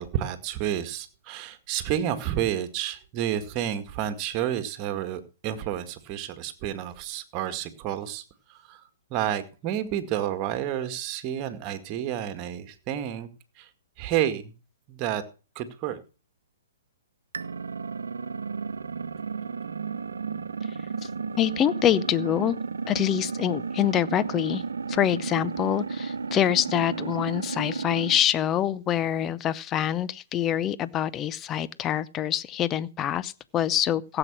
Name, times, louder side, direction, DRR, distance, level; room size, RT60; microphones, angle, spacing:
voice 1, 0.0-8.2 8.5-8.8 9.1-13.3 13.6-13.7 14.0-14.5 14.9-15.2 15.6-16.0, right 11 dB, 35° right, 2.0 m, -30 dB
sound 1, 17.3-28.2, right 5 dB, 75° right, 1.0 m, -33 dB
voice 2, 21.4-22.6 22.9-24.6 24.9-34.2, left 11 dB, 25° left, 0.7 m, -25 dB
16.0 x 8.0 x 6.1 m
figure-of-eight pair, 120°, 0 cm